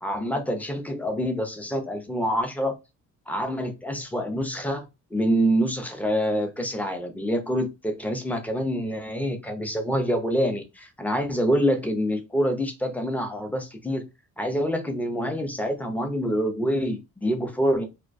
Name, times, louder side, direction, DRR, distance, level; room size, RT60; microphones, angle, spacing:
voice 1, 0.0-2.8 3.3-4.8 5.1-14.0 14.4-17.9, equal, 5° left, 0.4 m, -26 dB
2.3 x 2.1 x 2.5 m
cardioid pair, 90°, 30 cm